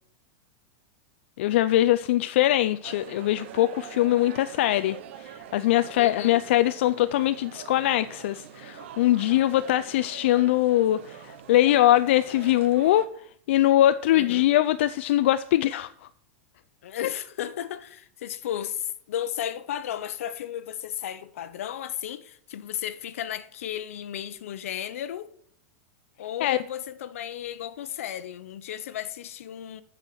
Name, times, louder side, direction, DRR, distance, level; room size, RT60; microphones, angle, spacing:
voice 1, 1.4-13.1 13.5-15.9 17.0-17.1 26.4-26.6, left 14 dB, 55° left, 0.4 m, -22 dB
sound 1, 2.8-13.1, right 9 dB, 55° right, 1.0 m, -44 dB
voice 2, 6.0-6.4 14.1-14.5 16.8-25.3 26.2-29.8, left 10 dB, 75° left, 0.8 m, -34 dB
7.4 x 6.3 x 7.6 m
supercardioid pair, 170°, 8 cm